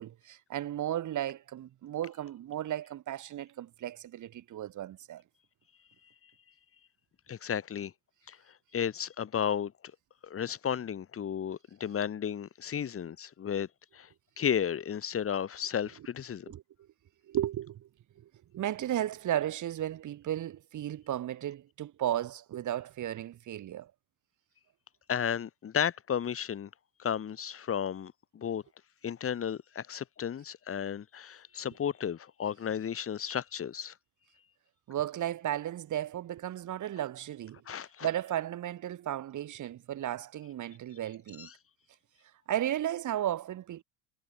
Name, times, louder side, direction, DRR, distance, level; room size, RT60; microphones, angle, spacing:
voice 1, 0.0-5.2 16.5-16.6 17.3-17.9 18.2-23.9 34.9-37.6 38.0-41.5 42.5-43.8, right 12 dB, 50° right, 7.3 m, -34 dB
voice 2, 7.3-7.9 8.3-8.4 8.7-9.7 10.2-13.7 13.9-14.1 14.4-16.5 25.1-26.7 27.0-28.6 29.0-33.9 37.7-38.1 41.4-41.5, left 8 dB, 35° left, 3.1 m, -33 dB
supercardioid pair, 100°, 39 cm